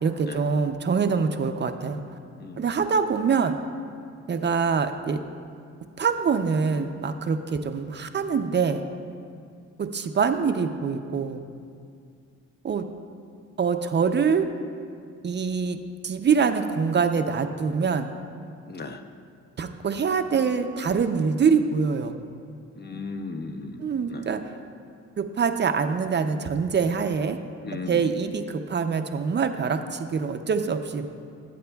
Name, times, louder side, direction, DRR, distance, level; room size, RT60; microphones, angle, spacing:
voice 1, 0.0-2.0 2.6-3.6 4.3-5.2 6.0-8.8 9.8-11.4 12.6-12.8 13.6-14.5 15.2-18.1 19.6-22.2 23.8-24.4 25.2-27.4 27.7-31.1, right 5 dB, 35° right, 7 dB, 0.5 m, -24 dB
voice 2, 18.7-19.0 22.8-24.3 27.6-28.0, left 3 dB, 35° left, 6 dB, 0.6 m, -36 dB
18.0 x 7.9 x 2.3 m, 2.3 s
cardioid pair, 90°, 30 cm